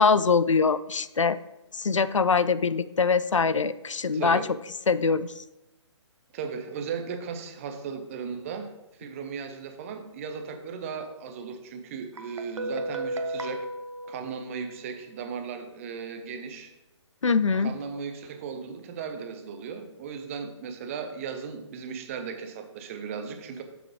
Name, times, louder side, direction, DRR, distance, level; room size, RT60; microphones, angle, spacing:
voice 1, 0.0-1.4 1.7-4.4 4.9-5.3 17.2-17.7, left 5 dB, 80° left, 15 dB, 0.4 m, -23 dB
voice 2, 4.1-4.5 6.3-8.7 9.0-13.7 14.1-16.7 17.6-23.6, right 6 dB, 25° right, 7 dB, 0.8 m, -36 dB
Guitar, 12.2-15.0, right 1 dB, 75° right, 0.9 m, -34 dB
9.6 x 7.1 x 3.1 m, 0.91 s
figure-of-eight pair, 140°, 16 cm